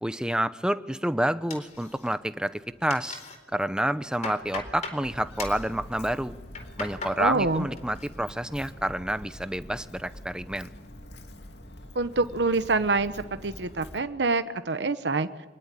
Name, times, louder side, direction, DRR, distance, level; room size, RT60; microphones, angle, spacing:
voice 1, 0.0-3.2 3.5-6.3 6.8-10.7, right 1 dB, 5° right, 12 dB, 0.7 m, -29 dB
sound 1, 1.5-2.3 2.6-3.4 3.8-5.0 5.4-5.7 6.3-7.2 7.6-8.1 8.4-8.9, left 3 dB, 40° left, 4.0 m, -39 dB
Walk footsteps, 5.0-14.0, left 1 dB, 75° left, 2.5 m, -45 dB
voice 2, 7.2-7.7 11.9-15.3, right 3 dB, 80° right, 10 dB, 1.0 m, -26 dB
26.0 x 20.0 x 9.8 m, 1.3 s
head